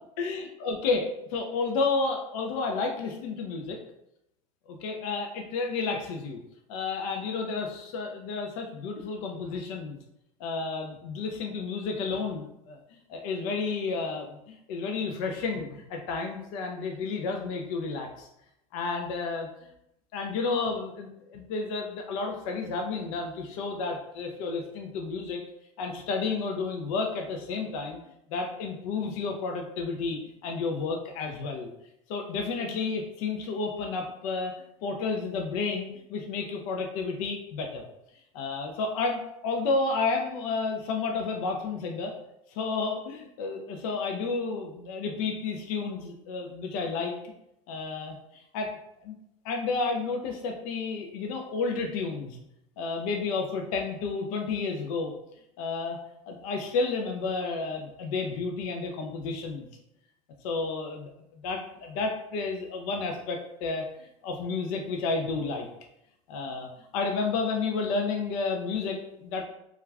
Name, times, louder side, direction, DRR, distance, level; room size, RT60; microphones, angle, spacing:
voice 1, 0.2-3.8 4.7-6.4 6.7-10.0 10.4-12.8 13.1-18.3 18.7-19.7 20.1-25.4 25.8-28.0 28.3-31.7 32.1-34.5 34.8-37.8 38.3-42.1 42.5-47.1 47.7-48.7 49.0-49.2 49.4-52.4 52.8-55.1 55.6-56.0 56.3-59.7 60.4-65.7 66.3-69.5, left 4 dB, 70° left, 2 dB, 0.5 m, -31 dB
2.3 x 2.2 x 3.2 m, 0.82 s
supercardioid pair, 105°, 19 cm